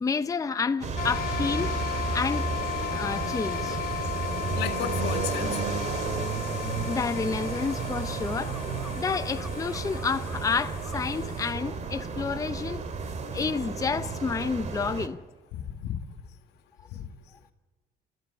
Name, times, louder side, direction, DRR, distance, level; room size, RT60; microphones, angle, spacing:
voice 1, 0.0-1.7 2.1-2.6 2.9-3.8 6.8-8.6 8.9-12.8 13.3-15.2, left 5 dB, 20° left, 0.7 m, -30 dB
sound 1, 0.8-15.1, right 4 dB, 45° right, 2.3 m, -32 dB
sound 2, 1.0-11.5, left 12 dB, 60° left, 0.9 m, -36 dB
voice 2, 4.5-5.6 15.5-16.0 16.9-17.1, left 10 dB, 85° left, 2.0 m, -33 dB
sound 3, 6.1-6.2 6.5-11.2, equal, 5° right, 1.4 m, -48 dB
28.5 x 13.5 x 10.0 m
cardioid pair, 110°, 17 cm